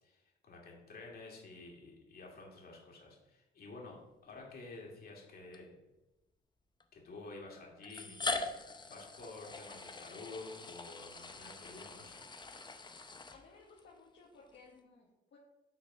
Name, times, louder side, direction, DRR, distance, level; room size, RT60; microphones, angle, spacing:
voice 1, 0.0-5.7 6.9-8.5 8.8-12.2, left 3 dB, 50° left, -1 dB, 2.3 m, -50 dB
sound 1, 4.4-4.5 5.5-5.6 6.8-6.9 7.8-13.8, left 3 dB, 20° left, 0.7 m, -42 dB
voice 2, 13.3-15.4, left 4 dB, 65° left, -2 dB, 1.2 m, -59 dB
6.3 x 4.0 x 5.4 m, 0.98 s
cardioid pair, 90°, 20 cm